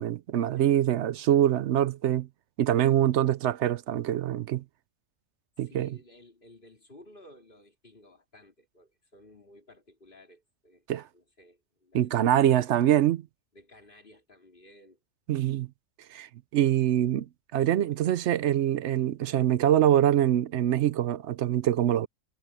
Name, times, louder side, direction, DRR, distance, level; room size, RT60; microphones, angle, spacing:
voice 1, 0.0-2.3 2.6-4.6 5.6-6.0 10.9-11.0 11.9-13.2 15.3-15.7 16.1-17.3 17.5-22.1, right 11 dB, 65° right, 0.8 m, -24 dB
voice 2, 5.6-13.1 13.5-15.0 17.6-18.0, left 1 dB, 40° left, 4.5 m, -55 dB
omnidirectional pair, 1.4 m